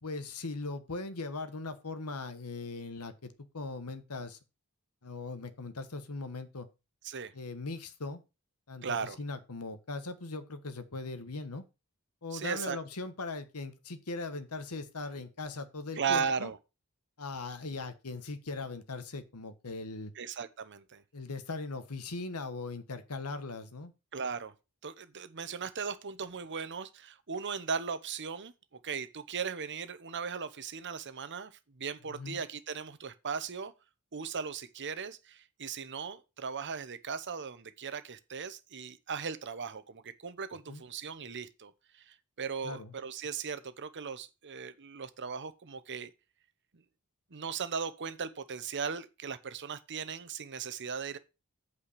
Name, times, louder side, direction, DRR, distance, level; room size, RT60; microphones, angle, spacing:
voice 1, 0.0-4.4 5.0-6.7 7.3-8.2 8.7-11.6 12.2-16.5 17.2-20.1 21.1-23.9 32.1-32.4 40.7-40.8 42.6-42.9, left 3 dB, 80° left, 1.3 m, -39 dB
voice 2, 8.8-9.2 12.3-12.8 16.0-16.6 20.1-21.0 24.1-24.5 24.8-33.7 34.1-46.1 47.3-51.2, right 6 dB, 55° right, 0.9 m, -37 dB
8.6 x 5.0 x 6.7 m
head